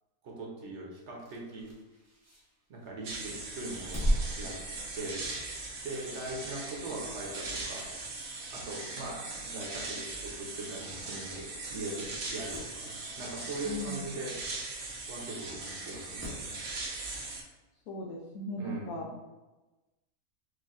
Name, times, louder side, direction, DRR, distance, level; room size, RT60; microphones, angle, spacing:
voice 1, 0.2-1.7 2.7-4.1 4.4-4.6 4.9-5.2 5.8-7.9 8.5-14.4 15.1-16.6 18.6-19.1, right 2 dB, 60° right, -2 dB, 0.9 m, -41 dB
sound 1, 1.2-3.0 3.5-5.4 5.7-5.9 7.2-8.1 8.5-8.6 9.5-9.6 9.8-9.9 10.1-10.2 11.1-11.3 11.6-11.7 12.1-12.8 14.6-14.7 15.7-16.6 17.9-18.0, equal, 25° right, 0.3 m, -37 dB
sound 2, 3.0-17.4, right 3 dB, 85° right, 1.2 m, -40 dB
voice 2, 13.6-14.1 17.9-19.1, left 2 dB, 80° left, -3 dB, 1.0 m, -38 dB
4.7 x 2.5 x 2.4 m, 1.1 s
omnidirectional pair, 1.5 m